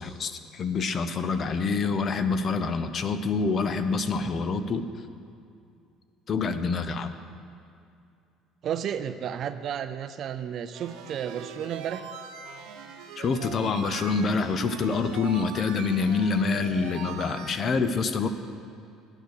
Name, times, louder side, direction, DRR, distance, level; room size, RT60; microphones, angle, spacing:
voice 1, 0.0-4.8 6.3-7.1 13.2-18.3, left 4 dB, 30° left, 10 dB, 0.5 m, -26 dB
voice 2, 8.6-12.1, right 9 dB, 40° right, 11 dB, 0.4 m, -32 dB
sound 1, 10.7-17.6, right 7 dB, 85° right, 1.0 m, -41 dB
10.5 x 8.0 x 6.5 m, 2.5 s
cardioid pair, 160°, 0 cm